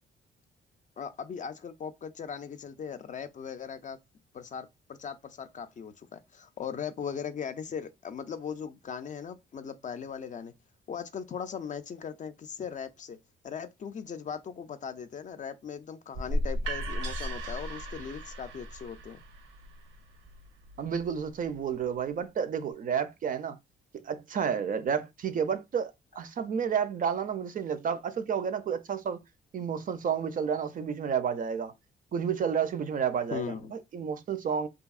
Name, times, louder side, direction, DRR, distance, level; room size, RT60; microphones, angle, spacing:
voice 1, 1.0-4.0 4.3-10.5 10.9-13.2 13.4-19.2 33.3-33.7, left 7 dB, 40° left, 0.4 m, -39 dB
sound 1, 16.1-21.9, equal, 80° right, 0.7 m, -36 dB
voice 2, 20.8-23.6 24.0-29.2 29.5-31.7 32.1-34.7, right 7 dB, 45° right, 0.4 m, -31 dB
2.8 x 2.6 x 2.3 m
cardioid pair, 90°, 20 cm